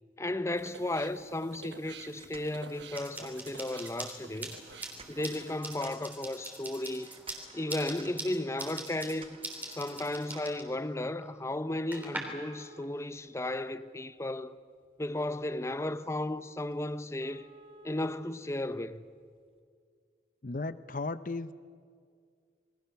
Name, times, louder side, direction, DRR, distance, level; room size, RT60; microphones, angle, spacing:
voice 1, 0.2-4.6 5.1-7.1 7.5-9.4 9.7-14.6 15.0-17.5 17.8-19.0, left 1 dB, 15° left, 0.7 m, -34 dB
sound 1, 0.5-5.6, right 4 dB, 80° right, 1.2 m, -50 dB
sound 2, 2.0-3.7 4.6-6.2 6.9-8.2 8.7-10.7 11.9-13.7 14.2-14.3 14.8-14.9 15.4-15.5 15.8-15.9 16.3-16.4 16.7-16.8 17.2-18.2 19.3-19.4, right 3 dB, 30° right, 1.4 m, -55 dB
sound 3, 2.9-12.2, right 2 dB, 10° right, 3.3 m, -44 dB
voice 2, 20.4-21.5, left 3 dB, 50° left, 0.8 m, -35 dB
27.5 x 22.5 x 7.0 m
head